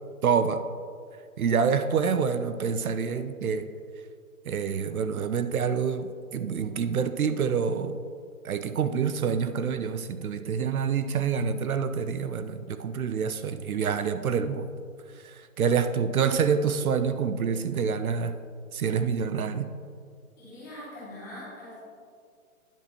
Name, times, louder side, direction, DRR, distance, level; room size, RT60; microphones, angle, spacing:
voice 1, 0.2-0.6 1.4-3.7 4.5-8.0 8.4-14.7 15.2-18.3 18.7-19.7, right 6 dB, 70° right, 10 dB, 0.6 m, -27 dB
voice 2, 20.4-21.8, left 1 dB, 15° left, -10 dB, 1.6 m, -42 dB
10.0 x 6.4 x 3.0 m, 2.1 s
hypercardioid pair, 180°, 44 cm